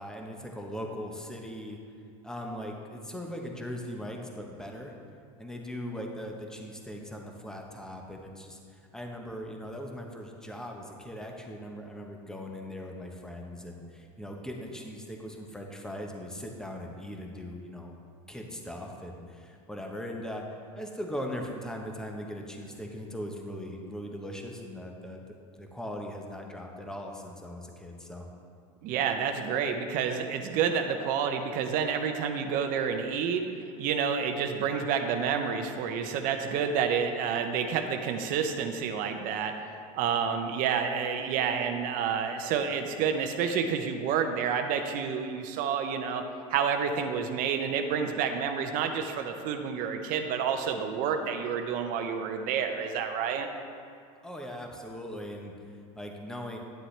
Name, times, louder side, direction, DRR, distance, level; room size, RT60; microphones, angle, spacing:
voice 1, 0.0-1.8 2.2-4.9 5.4-17.9 18.3-20.4 20.7-28.3 54.2-56.6, equal, 5° left, 1 dB, 1.0 m, -40 dB
voice 2, 28.8-33.5 33.8-39.6 39.9-46.2 46.5-53.5, right 7 dB, 55° right, 6 dB, 0.7 m, -29 dB
10.5 x 7.5 x 3.3 m, 2.4 s
supercardioid pair, 110°, 17 cm